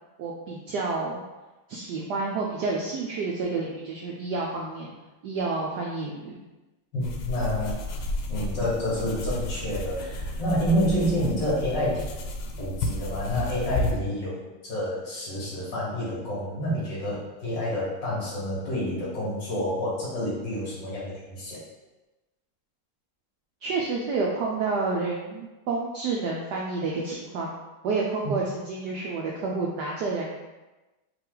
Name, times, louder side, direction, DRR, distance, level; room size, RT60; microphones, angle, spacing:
voice 1, 0.2-1.2 1.7-4.9 5.2-6.4 23.6-27.5 27.8-30.4, right 3 dB, 75° right, -2 dB, 0.9 m, -29 dB
voice 2, 6.9-7.8 8.3-12.1 12.6-21.6 28.2-28.3, equal, 55° left, -6 dB, 2.1 m, -28 dB
sound 1, 7.0-13.9, left 1 dB, 85° left, 1.5 m, -32 dB
4.8 x 2.9 x 3.8 m, 1.1 s
omnidirectional pair, 2.3 m